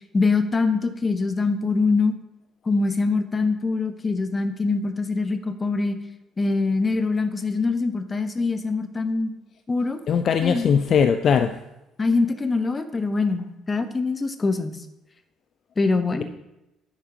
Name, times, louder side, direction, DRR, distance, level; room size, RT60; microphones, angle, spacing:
voice 1, 0.1-2.2 2.6-6.0 6.4-9.3 9.7-10.0 10.4-10.6 12.0-14.8 15.8-16.2, left 3 dB, 30° left, 9 dB, 1.0 m, -23 dB
voice 2, 10.1-11.5, left 7 dB, 50° left, 10 dB, 0.5 m, -20 dB
10.0 x 8.7 x 2.9 m, 0.93 s
hypercardioid pair, 50°, 0 cm